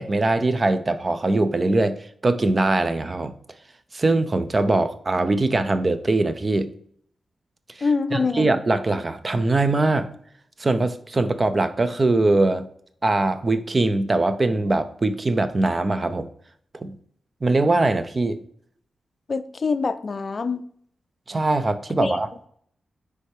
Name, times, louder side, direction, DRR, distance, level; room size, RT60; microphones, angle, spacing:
voice 1, 0.0-2.0 2.2-3.3 3.9-6.7 8.1-10.1 10.6-12.7 13.0-16.3 16.8-17.0 17.4-18.4 21.3-22.3, right 2 dB, 35° right, 0.6 m, -22 dB
voice 2, 7.8-8.5 19.3-20.7 22.0-22.2, left 4 dB, 50° left, 0.4 m, -25 dB
9.7 x 3.3 x 3.3 m
cardioid pair, 60°, 0 cm